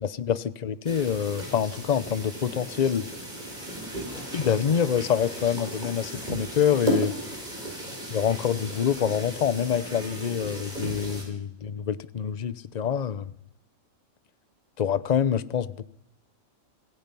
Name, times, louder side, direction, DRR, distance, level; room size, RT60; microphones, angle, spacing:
voice 1, 0.0-3.1 4.3-7.1 8.1-13.3 14.8-15.8, left 8 dB, 40° left, 15 dB, 0.8 m, -26 dB
sound 1, 0.8-11.2, equal, 35° right, 5.6 m, -35 dB
27.0 x 18.0 x 5.5 m, 0.83 s
omnidirectional pair, 1.4 m